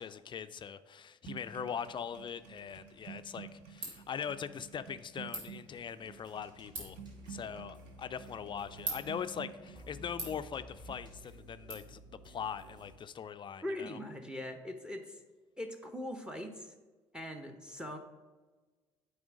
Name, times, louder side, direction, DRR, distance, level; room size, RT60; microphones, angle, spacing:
voice 1, 0.0-7.0 7.3-14.0, left 7 dB, 35° left, 12 dB, 0.4 m, -41 dB
sound 1, 1.2-11.0, right 8 dB, 70° right, 0.9 m, -51 dB
Ratchet pawl, 2.6-11.7, right 3 dB, 85° right, 1.7 m, -48 dB
sound 2, 5.9-13.0, equal, 30° right, 2.1 m, -54 dB
voice 2, 13.6-15.2 15.6-16.7 17.1-18.0, left 1 dB, 5° right, 6 dB, 0.8 m, -41 dB
8.6 x 3.3 x 5.1 m, 1.3 s
hypercardioid pair, 60°, 14 cm